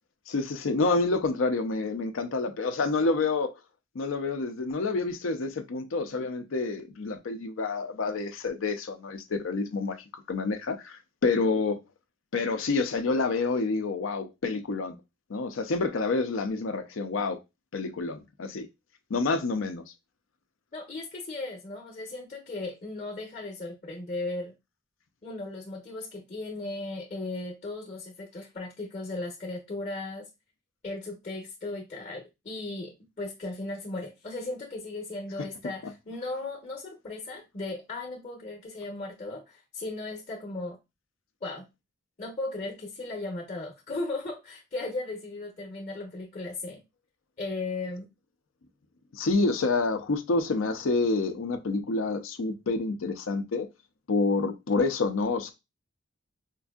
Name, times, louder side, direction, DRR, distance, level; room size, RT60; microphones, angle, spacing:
voice 1, 0.3-3.5 3.9-11.8 12.3-15.0 15.3-17.4 17.7-18.7 19.1-19.8 49.1-53.7 54.1-55.5, left 3 dB, 75° left, 0.5 m, -28 dB
voice 2, 20.7-24.5 25.2-30.3 30.8-40.8 41.4-41.7 42.2-46.8 47.4-48.1, left 2 dB, 35° left, 0.8 m, -36 dB
4.5 x 2.5 x 2.3 m
head